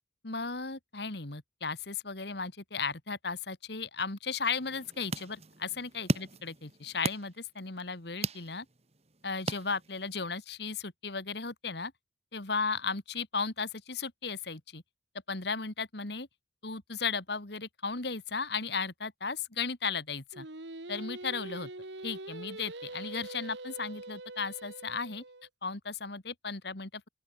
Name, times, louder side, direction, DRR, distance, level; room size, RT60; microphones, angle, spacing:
voice 1, 0.2-8.7 9.2-11.9 12.3-14.8 15.3-16.3 16.6-20.5 20.9-21.7 22.0-25.2 25.6-27.1, left 4 dB, 60° left, 2.2 m, -35 dB
sound 1, 4.6-10.3, right 2 dB, 35° right, 2.0 m, -38 dB
Singing, 20.3-25.5, right 2 dB, 70° right, 2.2 m, -44 dB
open air
head